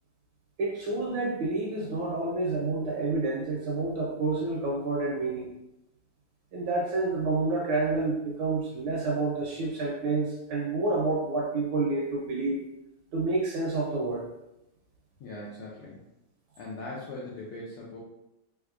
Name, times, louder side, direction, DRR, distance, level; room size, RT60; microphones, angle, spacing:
voice 1, 0.6-5.5 6.5-12.6 13.1-14.3, right 3 dB, 70° right, -3 dB, 1.3 m, -29 dB
voice 2, 15.2-16.1 16.6-18.0, left 2 dB, 80° left, -5 dB, 0.9 m, -40 dB
3.5 x 3.3 x 2.4 m, 0.88 s
omnidirectional pair, 2.4 m